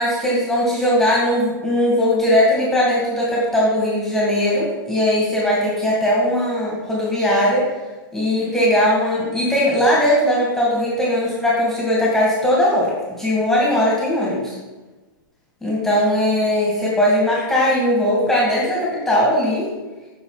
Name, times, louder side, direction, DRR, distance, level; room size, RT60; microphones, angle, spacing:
voice 1, 0.0-7.6 8.1-14.6 15.6-19.7, left 1 dB, 5° left, -5 dB, 2.3 m, -19 dB
8.9 x 6.2 x 4.1 m, 1.2 s
hypercardioid pair, 125°, 12 cm